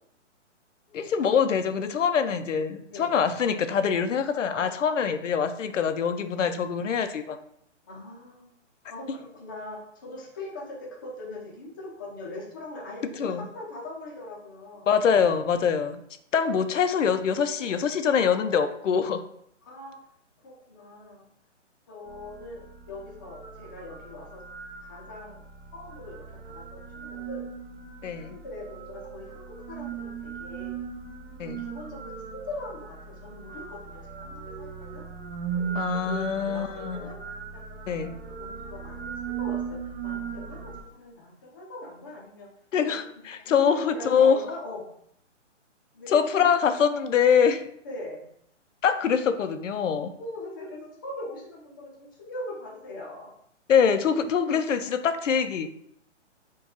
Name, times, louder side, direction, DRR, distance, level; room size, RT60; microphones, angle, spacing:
voice 1, 0.9-7.4 9.1-9.2 13.2-13.5 14.9-16.0 16.3-19.2 28.0-28.4 31.4-31.6 35.7-37.1 37.9-38.2 42.7-44.4 46.1-47.7 48.8-50.1 53.7-55.7, left 7 dB, 90° left, 9 dB, 0.6 m, -24 dB
voice 2, 4.3-4.7 6.2-6.5 7.9-8.5 8.9-14.9 16.5-16.6 19.6-20.0 20.4-21.3 21.9-24.4 24.8-25.4 25.7-27.5 28.1-30.7 31.4-35.0 35.5-37.2 37.7-39.1 39.4-42.5 42.8-42.9 43.5-44.8 45.9-46.1 46.4-46.5 47.8-48.2 50.2-53.3, left 2 dB, 20° left, -4 dB, 0.5 m, -41 dB
sound 1, 22.1-40.8, right 6 dB, 45° right, 0.6 m, -38 dB
4.7 x 2.3 x 4.2 m, 0.70 s
hypercardioid pair, 160°, 37 cm